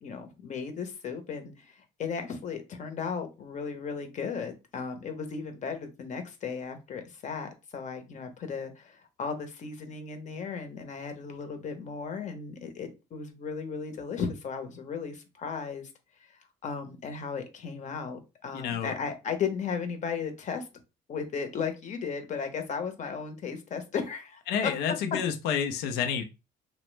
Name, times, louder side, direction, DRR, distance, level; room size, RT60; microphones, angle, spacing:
voice 1, 0.0-15.9 16.6-20.7 21.1-24.7, left 6 dB, 45° left, 7 dB, 0.8 m, -35 dB
voice 2, 18.5-19.0 24.5-26.2, left 7 dB, 90° left, 6 dB, 0.5 m, -29 dB
3.0 x 2.0 x 3.2 m, 0.27 s
cardioid pair, 110°, 17 cm